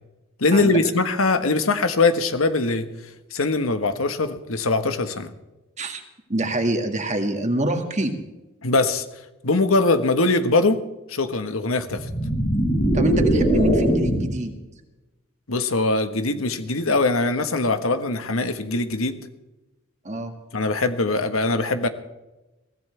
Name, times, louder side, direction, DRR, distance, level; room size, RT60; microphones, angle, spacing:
voice 1, 0.4-2.9 3.3-5.3 8.6-9.0 9.4-10.8 11.1-12.1 15.5-19.2 20.5-21.9, left 3 dB, 90° left, 9 dB, 1.4 m, -22 dB
voice 2, 6.3-8.2 12.9-14.5 20.0-20.3, right 1 dB, 35° right, 5 dB, 2.0 m, -25 dB
sound 1, 11.9-14.4, right 1 dB, 35° left, 6.5 m, -21 dB
23.0 x 16.5 x 3.4 m, 1.0 s
head